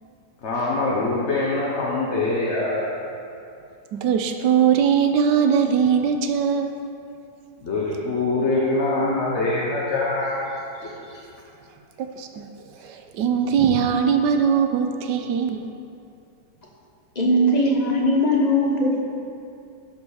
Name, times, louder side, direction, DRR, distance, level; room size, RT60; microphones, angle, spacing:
voice 1, 0.4-3.0 7.6-10.5 10.8-11.2, left 2 dB, 50° left, -4 dB, 1.1 m, -24 dB
voice 2, 4.0-6.7 12.0-12.5 12.8-15.7, right 7 dB, 85° right, 5 dB, 1.3 m, -21 dB
voice 3, 17.2-19.0, equal, 30° left, -2 dB, 0.9 m, -19 dB
12.0 x 4.4 x 4.8 m, 2.6 s
omnidirectional pair, 1.8 m